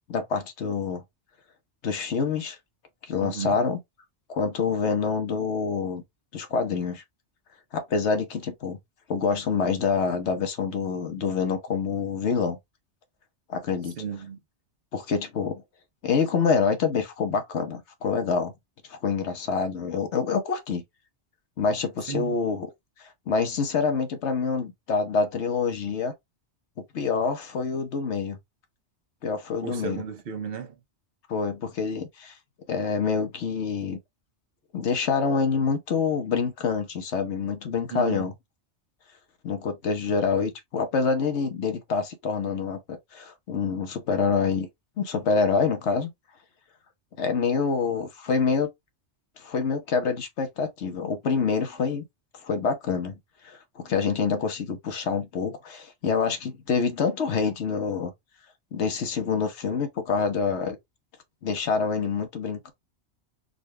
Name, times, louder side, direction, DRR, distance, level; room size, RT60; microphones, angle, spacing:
voice 1, 0.1-1.0 1.8-2.6 3.0-3.8 4.3-6.0 6.3-7.0 7.7-8.8 9.1-12.6 13.5-13.9 14.9-15.6 16.0-18.5 18.9-20.8 21.6-22.7 23.0-26.1 26.9-28.4 29.2-30.0 31.3-32.3 32.7-34.0 34.7-38.3 39.4-44.7 45.0-46.1 47.2-48.7 49.4-52.0 52.4-53.2 53.4-58.1 58.7-60.8 61.4-62.7, left 5 dB, 75° left, 1.2 m, -26 dB
voice 2, 3.2-3.6 14.0-14.4 22.1-22.3 29.6-30.7 37.9-38.3, right 7 dB, 55° right, 1.0 m, -34 dB
3.9 x 2.4 x 3.1 m
omnidirectional pair, 1.2 m